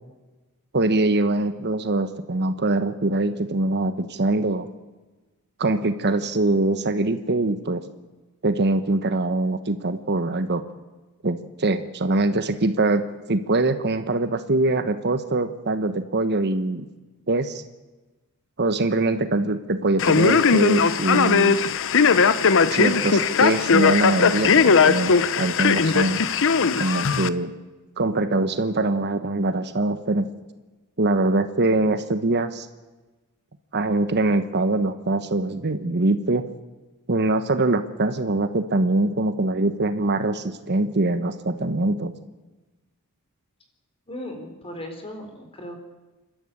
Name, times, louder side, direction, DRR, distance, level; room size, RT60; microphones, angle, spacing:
voice 1, 0.7-4.7 5.6-7.8 8.4-10.6 11.2-13.0 13.3-16.9 17.3-17.6 18.6-21.6 22.7-26.2 26.8-27.5 28.0-30.3 31.0-32.7 33.7-36.4 37.1-42.1, right 2 dB, 50° right, 10 dB, 1.1 m, -23 dB
Male speech man speaking, 20.0-27.3, left 5 dB, 60° left, 0.9 m, -19 dB
voice 2, 44.1-45.7, left 1 dB, 25° left, 4 dB, 4.1 m, -37 dB
28.5 x 13.0 x 8.6 m, 1.2 s
head